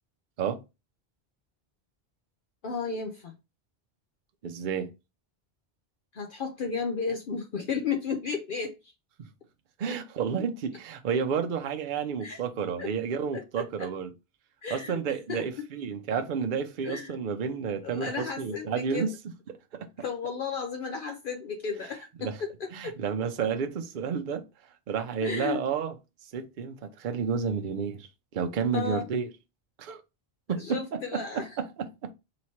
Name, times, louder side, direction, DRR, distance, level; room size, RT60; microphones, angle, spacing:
voice 1, 2.6-3.3 6.1-8.9 12.2-12.4 12.8-12.9 13.3-13.9 14.6-15.0 15.3-15.7 16.8-17.1 17.8-19.1 20.0-23.0 25.2-25.6 28.7-29.1 30.6-31.5, left 5 dB, 60° left, 0.8 m, -33 dB
voice 2, 4.4-4.9 9.2-9.3 9.8-14.1 14.7-19.1 19.5-19.9 22.2-22.4 22.7-24.4 24.9-25.9 26.3-29.3 29.8-30.0 30.5-32.1, right 6 dB, 55° right, 0.7 m, -31 dB
3.1 x 3.0 x 4.3 m
omnidirectional pair, 1.0 m